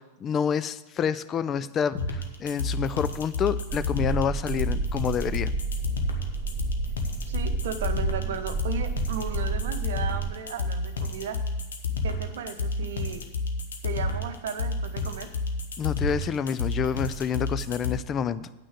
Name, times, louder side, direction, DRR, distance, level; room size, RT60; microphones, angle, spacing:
voice 1, 0.2-5.5 15.8-18.5, left 7 dB, 25° left, 15 dB, 0.4 m, -28 dB
sound 1, 2.0-18.0, left 3 dB, 65° left, 1.0 m, -30 dB
sound 2, 3.7-10.3, right 5 dB, 30° right, 1.6 m, -32 dB
voice 2, 7.2-11.4 12.0-13.2 13.8-15.3, right 7 dB, 60° right, 8 dB, 0.8 m, -35 dB
8.9 x 6.2 x 7.7 m, 1.0 s
figure-of-eight pair, 90°, 0 cm